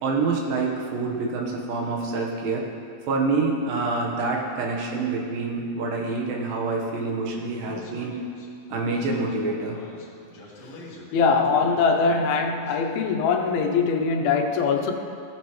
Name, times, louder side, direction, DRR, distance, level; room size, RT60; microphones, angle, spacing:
voice 1, 0.0-2.7 3.1-8.1 8.7-9.8, right 3 dB, 70° right, -1 dB, 2.8 m, -26 dB
Speech, 7.6-12.8, left 2 dB, 55° left, 2.5 m, -44 dB
voice 2, 11.1-14.9, left 5 dB, 85° left, 3 dB, 2.6 m, -22 dB
17.0 x 8.2 x 3.1 m, 2.5 s
omnidirectional pair, 4.3 m